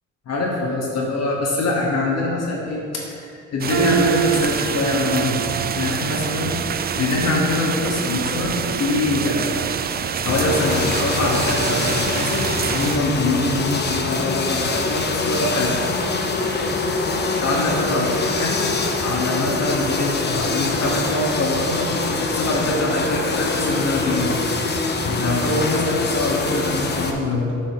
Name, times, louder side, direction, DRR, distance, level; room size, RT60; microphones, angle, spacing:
voice 1, 0.3-5.4 5.7-9.6 10.2-15.7 17.4-24.4 25.2-27.6, left 2 dB, 55° left, -3 dB, 1.4 m, -24 dB
sound 1, 3.6-13.0, right 7 dB, 35° right, 0.4 m, -26 dB
sound 2, 3.7-9.7 10.1-10.3 11.0-11.1, right 8 dB, 55° right, 0.9 m, -28 dB
sound 3, 10.3-27.1, left 3 dB, 35° left, 0.8 m, -24 dB
7.6 x 5.0 x 4.8 m, 2.5 s
cardioid pair, 90°, 30 cm